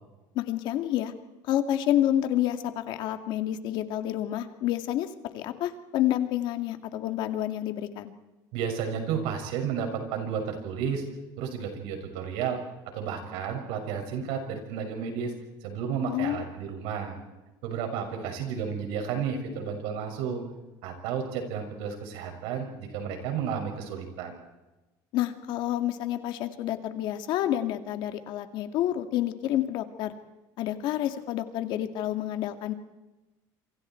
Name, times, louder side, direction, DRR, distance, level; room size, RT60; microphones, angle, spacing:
voice 1, 0.3-1.1 1.5-5.1 5.3-8.1 16.1-16.5 25.1-30.1 30.6-32.7, left 12 dB, 60° left, 8 dB, 2.1 m, -29 dB
voice 2, 8.5-11.0 11.4-12.6 12.9-15.3 15.6-17.2 17.6-20.5 20.8-24.4, right 7 dB, 75° right, 4 dB, 6.4 m, -32 dB
28.0 x 25.5 x 4.6 m, 1.1 s
cardioid pair, 155°, 9 cm